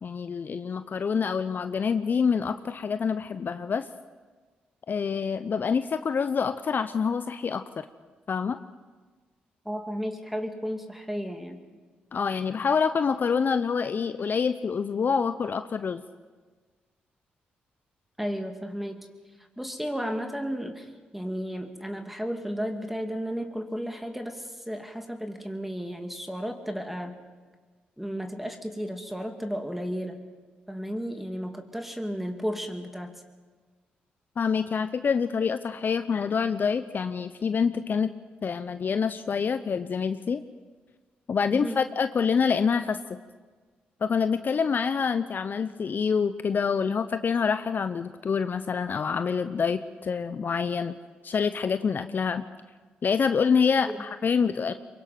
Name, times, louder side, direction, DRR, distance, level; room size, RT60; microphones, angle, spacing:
voice 1, 0.0-3.8 4.9-7.9 8.3-8.6 12.1-16.0 34.4-38.1 38.4-40.4 41.3-43.0 44.0-50.9 51.2-52.4 53.0-54.7, left 6 dB, 50° left, 11 dB, 0.7 m, -26 dB
voice 2, 9.6-11.6 18.2-19.1 19.4-27.2 28.0-30.3 30.7-33.2 41.5-41.8 53.9-54.0, equal, 5° right, 5 dB, 2.6 m, -33 dB
23.5 x 22.5 x 6.0 m, 1.4 s
hypercardioid pair, 45°, 4 cm